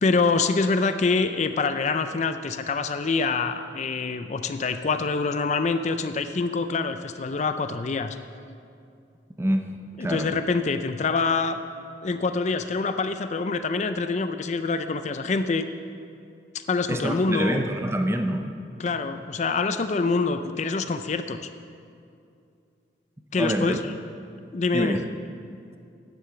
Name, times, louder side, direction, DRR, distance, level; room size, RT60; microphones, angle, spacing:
voice 1, 0.0-8.2 10.0-11.6 12.0-15.6 16.5-17.6 18.8-21.5 23.3-23.9 24.5-25.0, left 4 dB, 40° left, 9 dB, 0.4 m, -25 dB
voice 2, 9.4-9.7 10.0-10.3 16.9-18.5 23.4-23.8 24.7-25.0, right 1 dB, 15° right, 6 dB, 0.6 m, -26 dB
10.5 x 7.6 x 6.9 m, 2.5 s
head